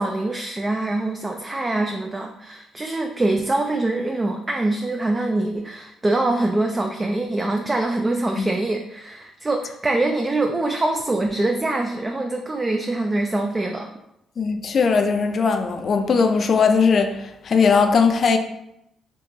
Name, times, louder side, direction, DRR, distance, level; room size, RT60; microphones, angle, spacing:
voice 1, 0.0-13.9, right 2 dB, 20° right, 0.3 m, -24 dB
voice 2, 14.4-18.4, left 5 dB, 50° left, 0.4 m, -19 dB
3.6 x 2.9 x 2.7 m
cardioid pair, 90°, 0 cm